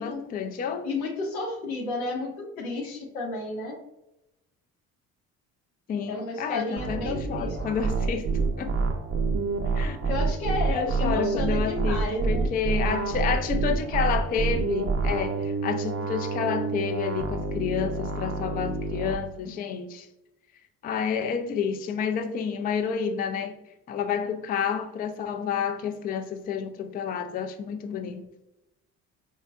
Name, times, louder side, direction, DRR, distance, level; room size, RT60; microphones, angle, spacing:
voice 1, 0.0-0.9 5.9-8.3 8.6-8.7 9.7-10.1 10.7-20.1 20.8-23.6 23.9-28.3, left 7 dB, 25° left, 0.3 m, -29 dB
voice 2, 0.8-3.8 6.1-7.6 10.1-12.5, left 3 dB, 85° left, 0.8 m, -32 dB
sound 1, 6.8-19.1, right 4 dB, 35° right, 0.5 m, -28 dB
4.0 x 2.2 x 2.3 m
hypercardioid pair, 50°, 42 cm